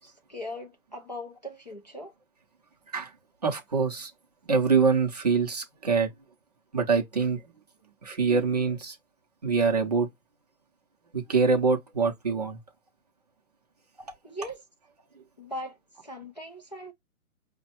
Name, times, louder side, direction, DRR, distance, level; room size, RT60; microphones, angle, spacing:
voice 1, 0.0-2.1 14.2-14.6 15.4-16.9, left 1 dB, 35° left, 0.4 m, -39 dB
voice 2, 3.4-4.1 4.5-6.1 6.7-7.4 8.0-9.0 9.4-10.1 11.1-12.6, right 5 dB, 30° right, 0.5 m, -24 dB
5.1 x 2.1 x 2.8 m
hypercardioid pair, 160°, 42 cm